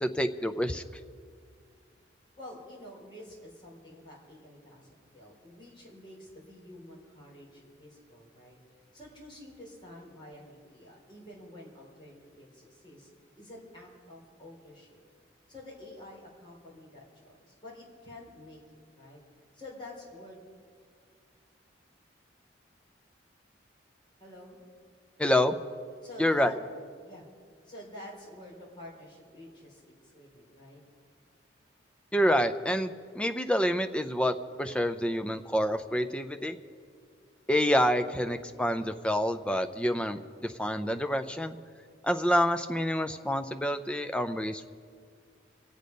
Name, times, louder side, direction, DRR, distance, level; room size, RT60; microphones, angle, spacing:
voice 1, 0.0-0.8 25.2-25.5 26.2-26.5 32.1-36.6 37.5-41.6 42.0-44.7, equal, 5° left, 9 dB, 0.5 m, -27 dB
voice 2, 2.4-8.6 8.9-13.1 13.4-15.0 15.5-19.2 19.5-20.4 24.2-24.6 26.0-26.5 27.0-27.3 27.6-30.8, left 1 dB, 25° left, -3 dB, 3.7 m, -49 dB
24.5 x 8.4 x 5.3 m, 2.1 s
head